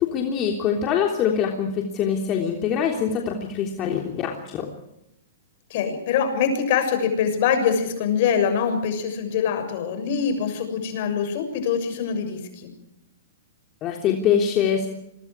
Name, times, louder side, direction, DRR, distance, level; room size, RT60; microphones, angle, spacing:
voice 1, 0.0-4.6 13.8-14.9, left 8 dB, 35° left, 1 dB, 3.4 m, -24 dB
voice 2, 5.7-12.7, left 7 dB, 55° left, 7 dB, 6.9 m, -24 dB
28.0 x 23.5 x 4.8 m, 0.85 s
hypercardioid pair, 120°, 0 cm